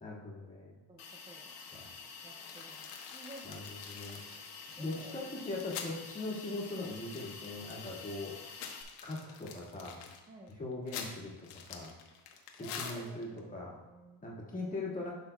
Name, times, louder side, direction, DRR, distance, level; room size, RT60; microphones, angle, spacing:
voice 1, 0.0-0.8 1.7-1.9 3.4-4.2 4.8-8.3 9.0-10.0 10.5-11.9 12.5-13.7 14.2-15.1, left 2 dB, 15° left, -4 dB, 1.6 m, -40 dB
voice 2, 0.9-1.5 2.2-3.5 4.8-5.3 10.3-10.5 12.6-14.2, right 2 dB, 15° right, -1 dB, 0.3 m, -53 dB
Hiss, 1.0-8.8, left 5 dB, 45° left, 1.2 m, -48 dB
sound 1, 2.4-6.0 6.3-6.4 6.7-7.9 8.3-13.4, left 7 dB, 90° left, 1.1 m, -46 dB
11.5 x 5.5 x 2.2 m, 1.1 s
cardioid pair, 150°, 49 cm